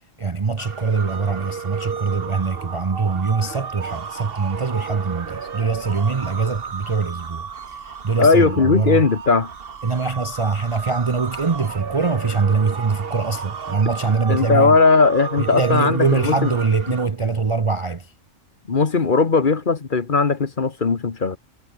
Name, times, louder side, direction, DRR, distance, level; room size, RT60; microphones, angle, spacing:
voice 1, 0.2-9.0 9.8-14.8 15.4-18.1, right 4 dB, 30° right, 0.6 m, -23 dB
sound 1, 0.6-17.1, right 6 dB, 50° right, 1.4 m, -33 dB
voice 2, 8.2-9.5 14.3-16.5 18.7-21.4, left 4 dB, 40° left, 1.4 m, -18 dB
omnidirectional pair, 1.3 m